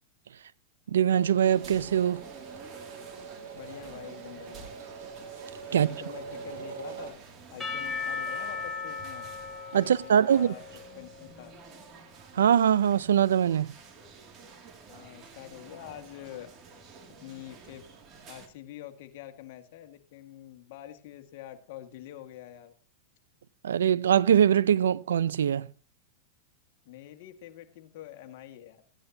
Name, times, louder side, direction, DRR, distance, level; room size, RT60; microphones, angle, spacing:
voice 1, 0.9-2.2 5.7-5.9 9.7-10.5 12.3-13.7 23.6-25.7, right 9 dB, 90° right, 0.5 m, -22 dB
sound 1, 1.1-7.1, right 5 dB, 65° right, 6.5 m, -43 dB
sound 2, 1.4-18.5, right 5 dB, 35° right, 2.3 m, -51 dB
voice 2, 3.5-4.7 5.7-7.1 7.5-9.2 9.7-10.6 11.0-11.5 14.9-16.5 17.2-17.8 18.3-22.7 26.8-28.8, left 12 dB, 60° left, 1.7 m, -46 dB
Percussion / Church bell, 7.6-11.5, left 4 dB, 10° left, 2.8 m, -37 dB
15.5 x 9.9 x 2.8 m
hypercardioid pair, 120°, 0 cm